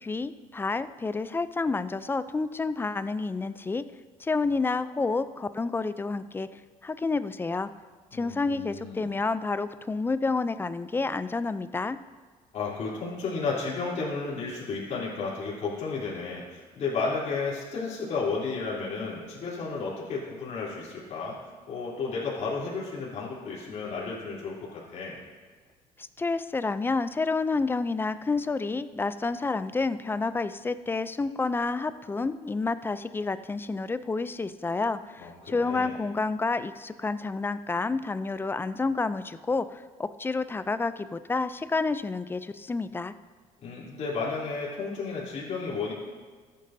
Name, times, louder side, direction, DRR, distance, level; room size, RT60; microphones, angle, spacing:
voice 1, 0.0-3.8 4.2-7.7 8.1-12.0 26.0-43.1, left 3 dB, 15° left, 13 dB, 0.4 m, -29 dB
voice 2, 8.1-9.1 12.5-21.4 21.7-25.2 35.2-35.9 43.6-45.9, left 4 dB, 55° left, -7 dB, 3.3 m, -33 dB
14.0 x 9.2 x 2.7 m, 1.5 s
cardioid pair, 105°, 14 cm